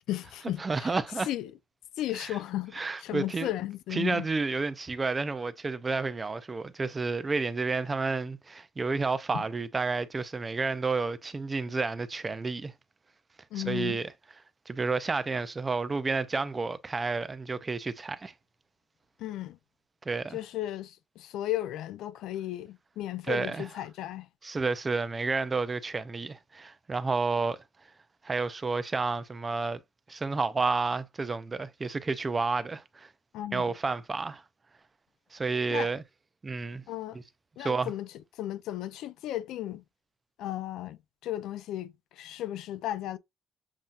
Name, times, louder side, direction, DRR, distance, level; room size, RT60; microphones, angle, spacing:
voice 1, 0.1-0.9 1.3-1.5 2.0-4.3 9.3-9.4 13.5-14.0 19.2-19.6 20.3-24.3 33.3-33.7 35.7-35.9 36.9-37.2 37.6-39.8 40.4-43.2, left 13 dB, 75° left, 0.5 m, -35 dB
voice 2, 0.6-1.3 2.2-2.3 2.7-3.5 3.9-12.7 13.6-14.1 14.7-18.3 20.1-20.4 23.3-23.7 24.4-27.6 28.2-29.8 30.1-33.1 33.5-34.4 35.3-36.0 36.4-36.8 37.6-37.9, right 4 dB, 20° right, 0.4 m, -30 dB
7.2 x 2.7 x 2.4 m
cardioid pair, 150°, 0 cm